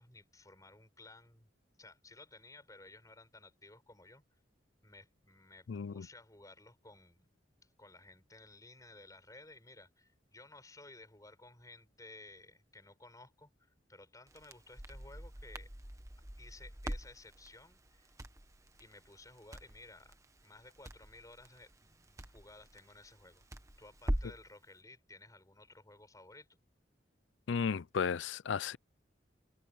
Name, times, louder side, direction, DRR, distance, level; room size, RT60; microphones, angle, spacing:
voice 1, 0.0-1.5 1.8-4.2 4.8-7.3 7.6-15.7 16.4-18.1 18.8-20.2 20.4-23.4 23.8-26.5, left 2 dB, 20° left, 7.2 m, -56 dB
voice 2, 5.7-6.1 27.5-28.8, left 6 dB, 85° left, 0.5 m, -34 dB
Crackle, 14.3-24.5, equal, 15° right, 1.3 m, -44 dB
head